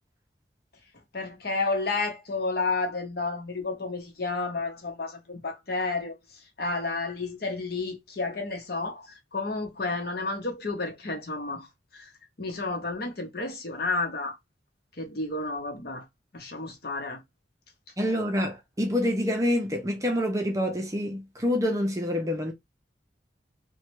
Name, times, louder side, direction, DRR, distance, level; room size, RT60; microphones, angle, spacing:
voice 1, 1.1-6.2 6.6-9.1 9.3-11.7 11.9-12.0 12.4-14.3 15.0-16.0 16.3-17.2, left 3 dB, 55° left, 0.9 m, -31 dB
voice 2, 18.0-22.5, left 1 dB, 15° right, 0.5 m, -27 dB
3.1 x 2.2 x 3.0 m
head